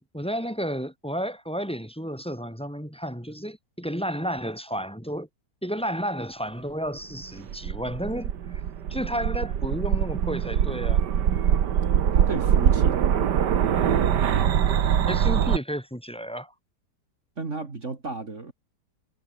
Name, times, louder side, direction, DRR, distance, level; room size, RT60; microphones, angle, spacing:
voice 1, 0.0-5.3 5.6-8.6 8.9-11.1 15.1-16.5, equal, 5° left, 5.0 m, -32 dB
sound 1, 7.2-15.6, right 9 dB, 75° right, 1.9 m, -23 dB
voice 2, 12.1-13.4 17.4-18.5, right 3 dB, 45° right, 2.9 m, -33 dB
omnidirectional pair, 1.8 m